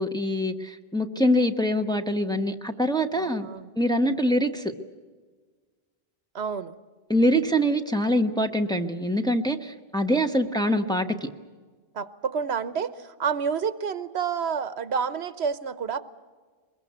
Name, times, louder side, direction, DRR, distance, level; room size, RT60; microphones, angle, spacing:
voice 1, 0.0-3.5 3.8-4.7 7.1-11.3, equal, 5° left, 4 dB, 1.1 m, -24 dB
voice 2, 3.1-3.7 6.3-6.7 10.4-10.5 11.9-16.0, right 6 dB, 85° right, 14 dB, 1.2 m, -29 dB
23.0 x 21.5 x 8.1 m, 1.4 s
omnidirectional pair, 1.1 m